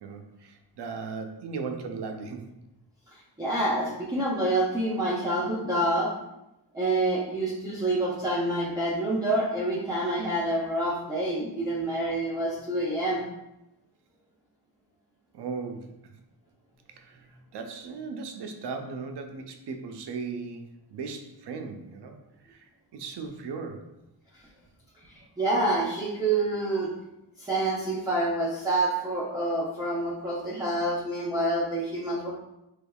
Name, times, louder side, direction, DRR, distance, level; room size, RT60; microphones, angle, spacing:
voice 1, 0.0-2.5 15.3-16.1 17.0-17.3 17.5-22.2 22.4-23.8, right 4 dB, 65° right, 5 dB, 0.5 m, -37 dB
voice 2, 3.4-6.1 6.7-13.2 25.1-26.9 27.4-32.3, right 1 dB, 10° right, -7 dB, 0.5 m, -27 dB
3.5 x 3.1 x 2.2 m, 0.90 s
cardioid pair, 75°, 43 cm